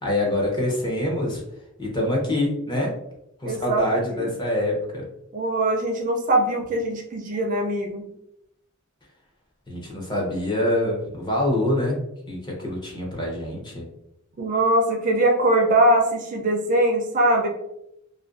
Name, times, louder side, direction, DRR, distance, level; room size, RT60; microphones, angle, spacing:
voice 1, 0.0-1.4 1.8-2.9 3.4-5.0 9.7-12.0 12.3-13.9, left 1 dB, 20° left, -2 dB, 0.6 m, -25 dB
voice 2, 3.4-4.3 5.3-8.0 14.4-17.5, right 1 dB, 40° right, 1 dB, 0.4 m, -22 dB
2.4 x 2.2 x 2.4 m, 0.82 s
head